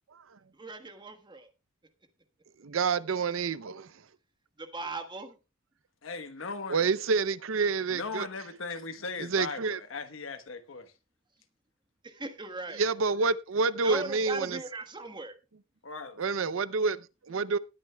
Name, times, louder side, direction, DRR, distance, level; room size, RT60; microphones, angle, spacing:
voice 1, 0.6-1.5 4.6-5.3 12.0-12.8 13.8-15.3, right 2 dB, 25° right, 1.3 m, -38 dB
voice 2, 2.6-3.9 6.7-8.3 9.2-9.8 12.7-14.6 16.2-17.6, right 4 dB, 85° right, 0.6 m, -28 dB
voice 3, 6.0-6.8 7.9-10.9 15.8-16.2, left 4 dB, 80° left, 1.1 m, -38 dB
19.0 x 9.5 x 2.3 m
head